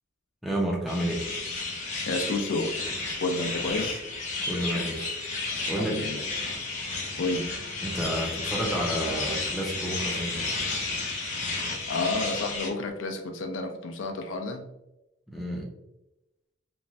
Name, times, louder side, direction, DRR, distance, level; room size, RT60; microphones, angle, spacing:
voice 1, 0.4-1.2 4.4-5.1 5.7-6.2 7.8-10.5 15.3-15.7, right 1 dB, ahead, -3 dB, 0.4 m, -30 dB
sound 1, 0.9-12.7, left 3 dB, 40° left, 0.7 m, -32 dB
voice 2, 2.1-2.8 3.2-4.0 5.8-6.2 7.2-7.5 11.9-14.7, left 2 dB, 80° left, 4 dB, 0.4 m, -30 dB
3.0 x 2.5 x 2.2 m, 0.91 s
head